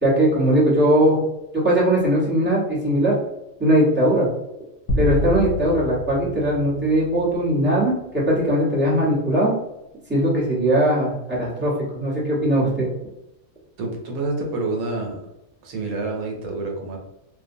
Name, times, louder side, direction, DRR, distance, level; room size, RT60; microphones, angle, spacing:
voice 1, 0.0-1.2 1.6-3.1 3.6-4.3 5.0-9.5 10.1-12.9, right 1 dB, 10° right, -7 dB, 0.7 m, -19 dB
sound 1, 4.9-7.5, left 1 dB, 80° left, 1.0 m, -27 dB
voice 2, 13.8-15.2 15.6-17.0, right 2 dB, 90° right, 1 dB, 1.2 m, -27 dB
2.6 x 2.1 x 2.5 m, 0.89 s
omnidirectional pair, 1.4 m